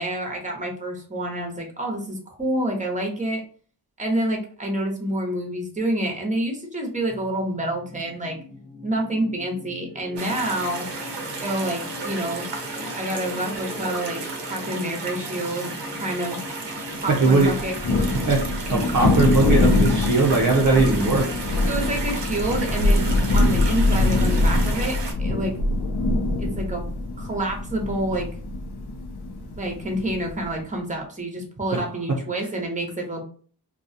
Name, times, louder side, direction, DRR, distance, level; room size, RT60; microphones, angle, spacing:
voice 1, 0.0-3.4 4.0-8.4 8.8-10.9 11.4-12.4 12.9-14.2 14.5-15.7 16.0-16.4 17.0-17.8 21.7-23.0 23.3-25.5 26.4-26.8 27.2-28.3 29.6-33.2, right 1 dB, 20° right, 1 dB, 0.8 m, -28 dB
sound 1, 7.1-18.5, left 2 dB, 20° left, 0.5 m, -41 dB
sound 2, 10.2-25.1, right 3 dB, 85° right, 0.6 m, -33 dB
voice 2, 17.1-17.6 18.3-21.3 31.7-31.8 32.1-32.2, right 3 dB, 50° right, -1 dB, 0.6 m, -20 dB
Thunder, 17.4-30.6, left 2 dB, 70° left, 0.5 m, -23 dB
2.3 x 2.2 x 2.6 m, 0.43 s
wide cardioid pair, 60°, 41 cm